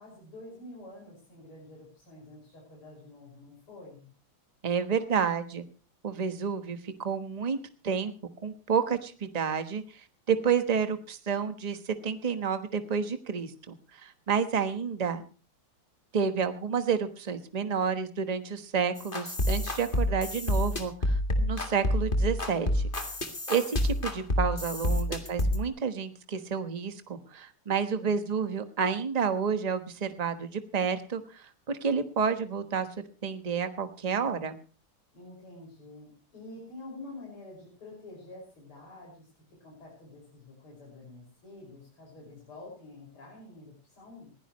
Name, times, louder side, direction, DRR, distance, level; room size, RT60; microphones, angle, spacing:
voice 1, 0.0-4.1 27.9-28.2 35.1-44.3, left 2 dB, 80° left, -3 dB, 6.8 m, -48 dB
voice 2, 4.6-5.6 6.0-7.6 7.8-8.1 8.4-15.2 16.1-22.8 23.5-32.9 33.2-34.6, right 6 dB, 25° right, 9 dB, 0.9 m, -30 dB
sound 1, 19.0-25.6, left 1 dB, 25° left, 2.0 m, -28 dB
21.0 x 15.5 x 3.1 m, 0.35 s
omnidirectional pair, 2.3 m